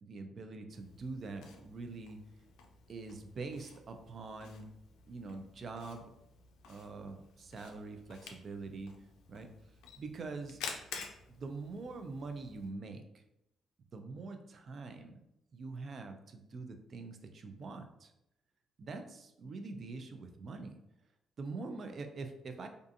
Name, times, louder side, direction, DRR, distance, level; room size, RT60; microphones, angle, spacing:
voice 1, 0.0-2.2 2.9-4.7 5.1-6.1 6.7-8.9 9.3-9.5 10.0-10.6 11.3-13.2 13.9-15.2 15.5-18.1 18.8-20.8 21.4-22.7, right 3 dB, 50° right, 6 dB, 0.4 m, -44 dB
Camera, 0.7-12.7, left 5 dB, 90° left, 0.4 m, -51 dB
2.5 x 2.4 x 2.5 m, 0.84 s
cardioid pair, 90°, 0 cm